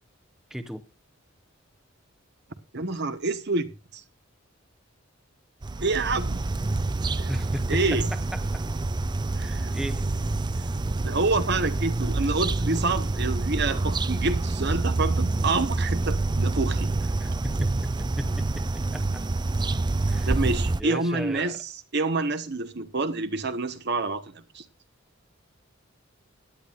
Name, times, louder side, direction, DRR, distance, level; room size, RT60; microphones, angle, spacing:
voice 1, 0.5-0.8 7.3-8.6 9.4-10.1 10.6-10.8 12.2-12.4 17.2-19.2 20.1-20.3 20.8-21.6, equal, ahead, 0.8 m, -36 dB
voice 2, 2.7-3.7 5.8-6.4 7.2-7.3 7.7-8.1 9.3-9.8 11.0-16.9 20.3-24.6, right 3 dB, 55° right, 1.2 m, -27 dB
sound 1, 5.6-20.8, right 2 dB, 20° right, 0.5 m, -27 dB
17.5 x 10.5 x 2.5 m
head